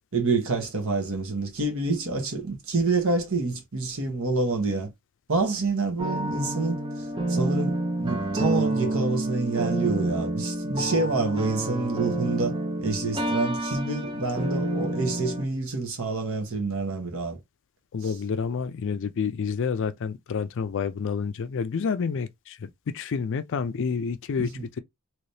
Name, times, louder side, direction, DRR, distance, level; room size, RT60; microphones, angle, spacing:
voice 1, 0.1-4.9 5.3-12.5 12.8-17.4 18.0-18.1 24.4-24.6, right 3 dB, 65° right, 1.2 m, -27 dB
sound 1, 6.0-15.4, right 1 dB, 20° right, 0.6 m, -28 dB
voice 2, 17.9-22.6 22.9-24.5, left 5 dB, 60° left, 0.4 m, -29 dB
3.2 x 3.0 x 2.7 m
head